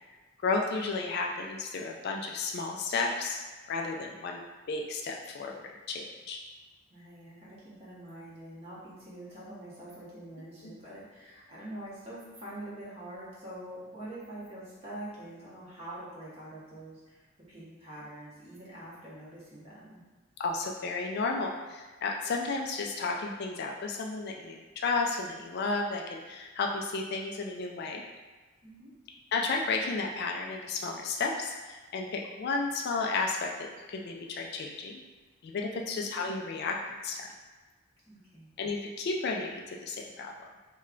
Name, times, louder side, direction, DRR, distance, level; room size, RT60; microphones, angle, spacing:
voice 1, 0.4-3.4 3.7-4.4 4.7-6.4 10.6-10.7 20.4-28.0 29.3-33.5 33.9-35.0 35.4-37.3 38.6-40.3, left 3 dB, 50° left, 1 dB, 0.3 m, -33 dB
voice 2, 6.9-17.2 17.5-20.0 28.6-28.9 35.8-36.1 38.1-38.5, right 1 dB, 30° right, -8 dB, 1.1 m, -45 dB
3.2 x 2.2 x 3.7 m, 1.3 s
head